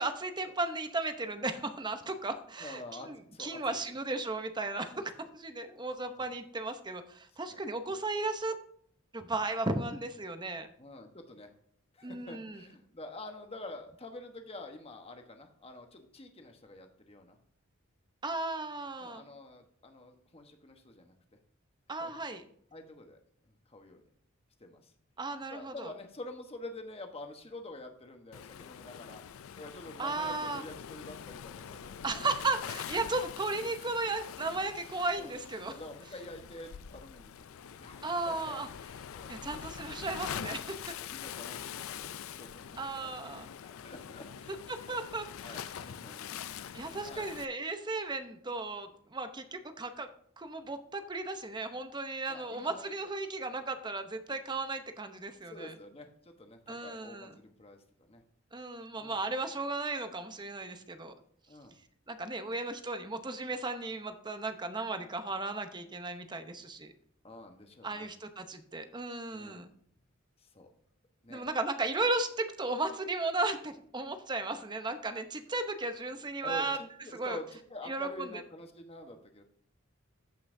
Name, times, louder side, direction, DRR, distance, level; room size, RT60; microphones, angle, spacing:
voice 1, 0.0-8.6 9.1-10.7 12.0-12.6 18.2-19.2 21.9-22.4 25.2-25.9 30.0-30.6 32.0-35.7 38.0-38.7 39.3-40.9 42.8-43.5 44.7-45.6 46.7-50.1 50.4-55.7 56.7-57.3 58.5-61.1 62.1-66.9 67.8-69.7 71.3-76.8 77.2-77.4 77.9-78.3, right 2 dB, 20° right, 8 dB, 0.8 m, -35 dB
voice 2, 2.6-3.8 4.9-5.1 6.1-6.3 7.5-7.6 10.8-11.5 11.9-17.4 19.0-21.1 22.0-22.1 22.7-24.1 24.6-24.9 25.5-32.0 33.8-33.9 35.2-35.3 35.7-39.3 39.7-39.9 41.0-44.6 44.9-45.0 45.4-46.6 47.0-47.3 52.3-52.9 55.4-58.2 58.9-59.2 61.5-61.8 67.2-68.1 69.3-69.7 70.4-70.7 71.2-71.4 76.4-79.4, left 2 dB, 30° left, 5 dB, 1.1 m, -48 dB
Waves surf, 28.3-47.4, left 8 dB, 75° left, 0.4 m, -44 dB
14.5 x 5.6 x 2.7 m, 0.65 s
head